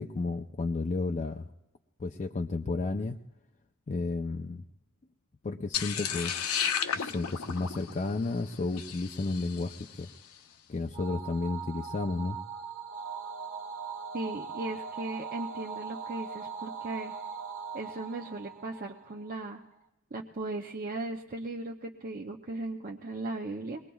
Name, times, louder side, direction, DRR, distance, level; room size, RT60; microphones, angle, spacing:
voice 1, 0.0-1.4 2.0-3.2 3.9-4.6 5.4-9.7 10.0-10.1 10.7-12.4, left 3 dB, 30° left, 3 dB, 0.4 m, -32 dB
sound 1, 5.7-10.0, left 8 dB, 70° left, 0.7 m, -34 dB
sound 2, 10.9-19.5, right 6 dB, 80° right, 1.3 m, -40 dB
voice 2, 14.1-17.1 17.7-19.6 20.1-23.8, right 2 dB, 40° right, 1 dB, 0.6 m, -37 dB
23.5 x 19.5 x 2.3 m, 0.97 s
head